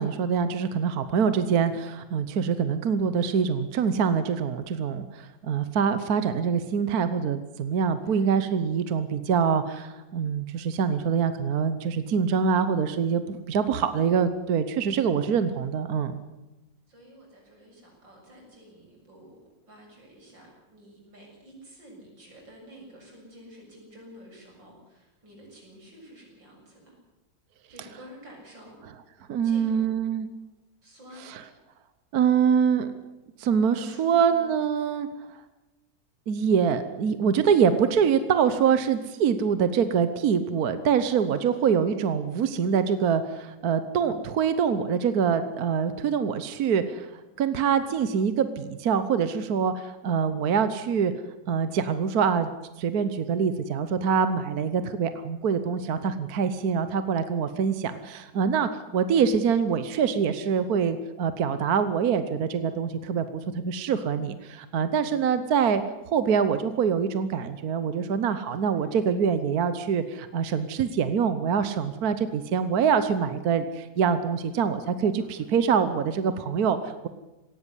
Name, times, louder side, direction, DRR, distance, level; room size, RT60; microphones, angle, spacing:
voice 1, 0.0-16.2 29.3-30.3 31.3-31.4 32.1-32.9 33.4-35.1 36.3-47.1 47.4-51.1 51.5-52.5 52.8-65.8 66.1-77.1, right 6 dB, 60° right, 11 dB, 1.4 m, -25 dB
voice 2, 8.0-8.4 16.9-26.9 27.7-28.8 29.4-29.9 30.8-31.3 33.8-34.5 41.3-41.8 68.2-69.2 74.4-74.7 75.2-75.5, equal, 90° right, -1 dB, 8.0 m, -50 dB
18.0 x 16.0 x 9.9 m, 1.1 s
omnidirectional pair, 2.0 m